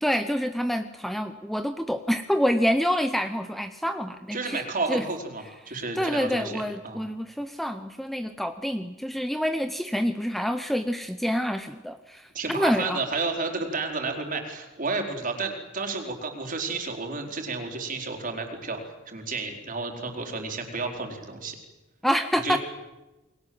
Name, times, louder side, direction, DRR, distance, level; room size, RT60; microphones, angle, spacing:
voice 1, 0.0-4.6 4.9-5.1 5.7-13.0 22.0-22.6, equal, ahead, 9 dB, 0.8 m, -27 dB
voice 2, 4.3-7.0 12.3-18.8 19.1-21.6 22.4-22.6, right 3 dB, 40° right, 3 dB, 4.5 m, -31 dB
29.5 x 21.5 x 7.9 m, 1.1 s
head